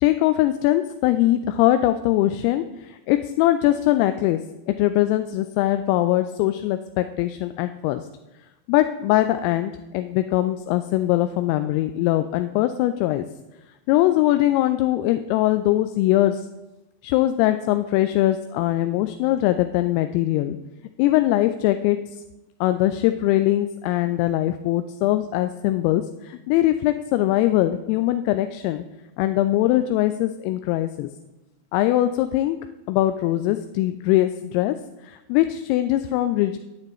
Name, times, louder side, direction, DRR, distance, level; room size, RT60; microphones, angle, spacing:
voice 1, 0.0-8.1 8.7-13.3 13.9-16.5 17.0-20.6 21.0-22.2 22.6-28.8 29.2-31.1 31.7-32.6 32.9-36.6, left 14 dB, 45° left, 10 dB, 0.4 m, -21 dB
10.5 x 8.8 x 3.1 m, 1.0 s
figure-of-eight pair, 90°, 0 cm